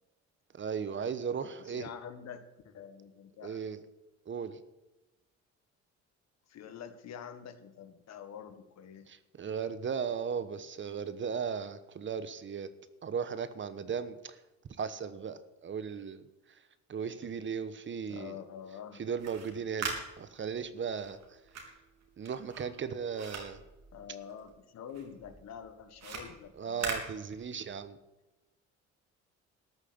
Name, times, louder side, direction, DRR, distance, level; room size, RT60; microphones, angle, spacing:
voice 1, 0.5-1.9 3.4-3.8 4.3-4.6 9.1-12.7 13.0-14.4 14.8-16.2 16.9-18.4 19.0-21.2 22.2-23.6 26.6-28.0, right 6 dB, 40° right, 13 dB, 1.1 m, -36 dB
voice 2, 1.6-3.6 6.5-9.1 18.1-19.0 23.9-26.9, left 8 dB, 65° left, 10 dB, 1.6 m, -46 dB
sound 1, 19.0-24.6 24.9-27.8, right 4 dB, 65° right, 3.5 m, -42 dB
13.0 x 6.4 x 8.7 m, 1.0 s
supercardioid pair, 80°, 29 cm